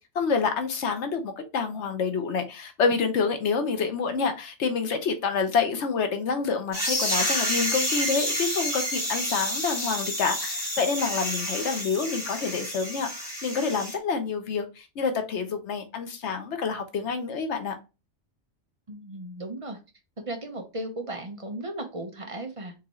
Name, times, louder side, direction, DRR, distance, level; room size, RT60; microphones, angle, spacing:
voice 1, 0.1-13.1 13.4-17.7, left 5 dB, 85° left, 7 dB, 1.1 m, -27 dB
sound 1, 6.7-13.9, equal, 15° right, 2.7 m, -29 dB
voice 2, 18.9-19.8 20.2-22.7, right 1 dB, 30° right, 4 dB, 0.9 m, -36 dB
4.5 x 3.6 x 3.0 m, 0.28 s
omnidirectional pair, 1.2 m